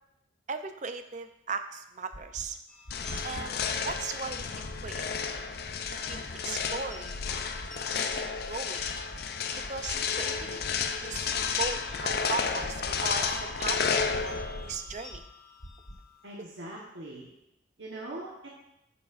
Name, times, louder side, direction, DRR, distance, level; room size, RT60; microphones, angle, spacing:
voice 1, 0.5-2.6 3.2-3.6 3.8-5.3 6.1-6.2 6.4-7.4 8.0-8.8 9.7-11.3 11.6-15.2, right 4 dB, 40° right, 8 dB, 0.5 m, -38 dB
sound 1, 2.1-2.4 2.8-3.2 3.6-3.9 4.3-4.7 5.1-5.4 5.8-6.2 6.6-6.9 7.3-7.7 8.1-8.4 8.8-9.2 9.6-9.9 10.3-10.7 11.1-11.4 11.8-12.2 12.6-12.9 13.3-13.7 14.1-14.4 14.8-15.2 15.6-15.9, equal, 80° left, 2.2 m, -45 dB
sound 2, 2.7-16.3, left 2 dB, 5° left, 1.5 m, -52 dB
sound 3, 2.9-14.8, left 6 dB, 55° left, 0.5 m, -32 dB
voice 2, 16.2-17.3 17.8-18.5, right 1 dB, 70° right, -3 dB, 1.2 m, -41 dB
9.9 x 7.2 x 2.5 m, 0.84 s
head